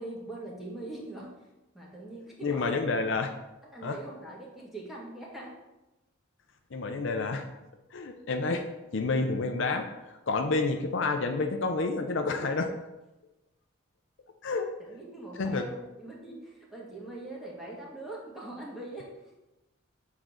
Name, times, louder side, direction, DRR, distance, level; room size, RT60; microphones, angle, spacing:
voice 1, 0.0-1.3 1.7-2.8 3.6-5.6 14.8-19.4, right 2 dB, ahead, -4 dB, 1.6 m, -42 dB
voice 2, 2.4-3.3 3.8-4.0 6.7-7.4 7.9-8.6 8.9-9.9 10.3-12.7 14.4-14.7 15.4-15.6, left 3 dB, 60° left, 5 dB, 0.5 m, -29 dB
7.2 x 3.8 x 6.0 m, 1.0 s
head